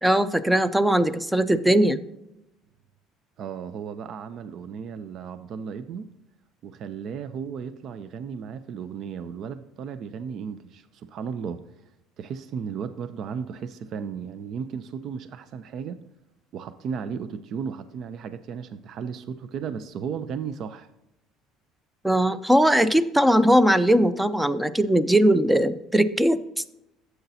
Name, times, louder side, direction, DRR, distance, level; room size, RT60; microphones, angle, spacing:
voice 1, 0.0-2.0 22.0-26.4, equal, 5° right, 14 dB, 0.5 m, -20 dB
voice 2, 3.4-6.1 6.6-11.6 12.2-16.0 16.5-20.9, right 6 dB, 55° right, 12 dB, 0.5 m, -35 dB
12.0 x 8.0 x 2.7 m, 0.88 s
supercardioid pair, 105°, 0 cm